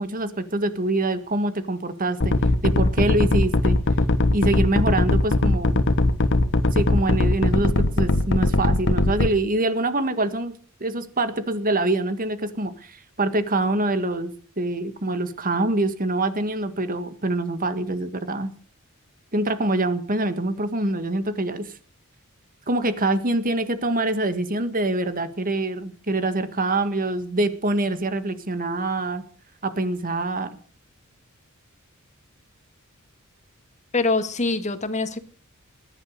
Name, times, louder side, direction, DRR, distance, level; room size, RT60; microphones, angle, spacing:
voice 1, 0.0-2.3 2.6-3.8 4.3-5.8 6.7-10.5 10.8-18.5 19.3-21.7 22.7-29.2 29.6-30.5, right 2 dB, 40° right, 11 dB, 1.9 m, -25 dB
sound 1, 2.2-9.3, left 2 dB, 55° left, 1.4 m, -20 dB
voice 2, 33.9-35.2, left 3 dB, 35° left, 9 dB, 1.8 m, -24 dB
20.0 x 11.0 x 6.6 m, 0.43 s
head